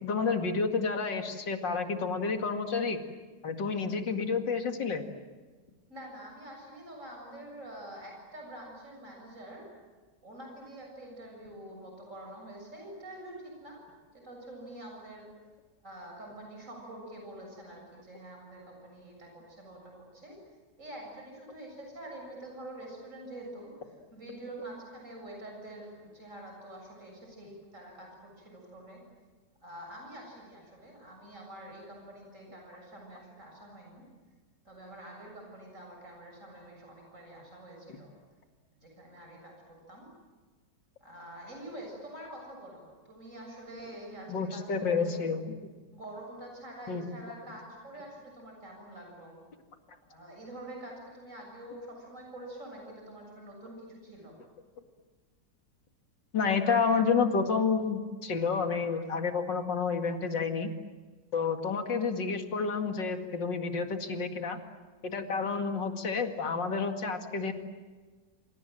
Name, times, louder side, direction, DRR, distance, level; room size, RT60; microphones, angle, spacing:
voice 1, 0.0-3.0 3.4-5.1 37.9-38.0 44.3-45.5 46.9-47.1 56.3-60.7 61.3-64.6 65.0-67.5, left 5 dB, 85° left, 5 dB, 2.8 m, -30 dB
voice 2, 5.9-9.7 10.2-13.8 14.1-15.3 15.8-20.4 20.8-29.0 29.6-34.0 34.6-38.1 38.8-40.1 41.0-45.3 45.9-49.3 50.1-54.4, right 1 dB, 45° right, 0 dB, 7.5 m, -46 dB
27.5 x 27.0 x 7.7 m, 1.4 s
omnidirectional pair, 1.9 m